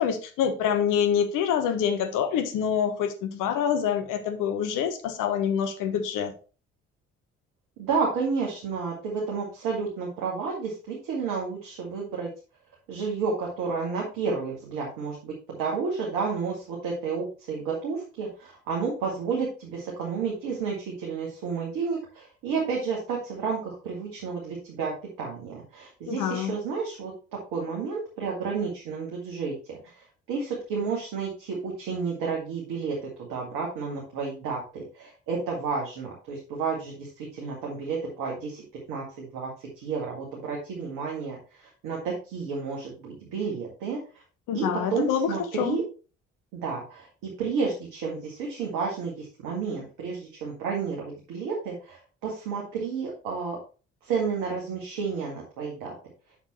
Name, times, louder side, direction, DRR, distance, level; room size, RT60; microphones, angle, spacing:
voice 1, 0.0-6.3 26.1-26.5 44.5-45.8, left 8 dB, 60° left, 1.3 m, -26 dB
voice 2, 7.8-12.3 12.9-24.9 25.2-27.1 27.5-33.0 33.3-38.6 38.9-41.4 41.8-44.0 44.5-45.8 46.5-53.6 54.0-55.9, right 5 dB, 60° right, 2.0 m, -31 dB
8.0 x 6.1 x 3.1 m
figure-of-eight pair, 45°, 36 cm